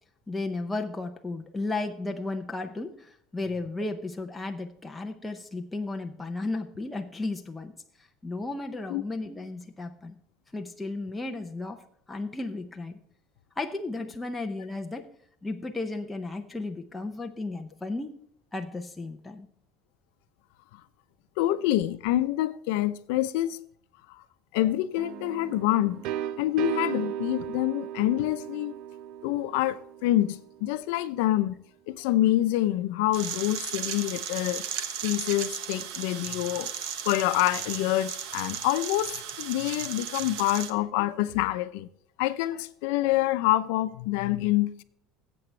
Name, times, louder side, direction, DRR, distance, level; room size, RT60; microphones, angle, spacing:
voice 1, 0.3-7.7 8.2-10.1 10.5-11.8 12.1-13.0 13.6-15.1 15.4-18.1 18.5-19.5, left 2 dB, 5° left, 0.6 m, -34 dB
voice 2, 21.4-23.6 24.5-26.0 26.4-28.7 29.2-31.6 31.9-34.7 35.0-36.7 37.1-41.9 42.2-44.8, left 15 dB, 80° left, 0.6 m, -26 dB
sound 1, 25.0-30.7, right 11 dB, 55° right, 0.4 m, -36 dB
sound 2, 33.1-40.7, right 8 dB, 70° right, 1.1 m, -35 dB
15.0 x 7.9 x 3.3 m
cardioid pair, 175°, 0 cm